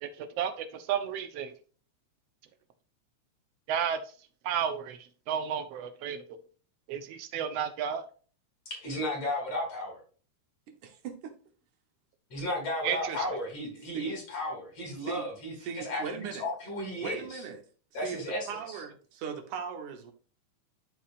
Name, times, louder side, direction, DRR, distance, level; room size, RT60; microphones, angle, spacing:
voice 1, 0.0-1.5 3.7-4.0 4.4-5.0 5.3-6.2 6.9-8.0 12.8-13.2, right 8 dB, 65° right, 1.9 m, -32 dB
voice 2, 8.7-10.0 12.3-17.4 17.9-18.8, left 1 dB, 55° left, 4.4 m, -34 dB
voice 3, 10.7-11.3 13.9-14.1 15.0-15.3 15.6-16.5 17.0-17.6 18.0-18.2 18.5-20.1, right 6 dB, 90° right, 2.8 m, -38 dB
13.0 x 4.8 x 2.5 m
omnidirectional pair, 3.4 m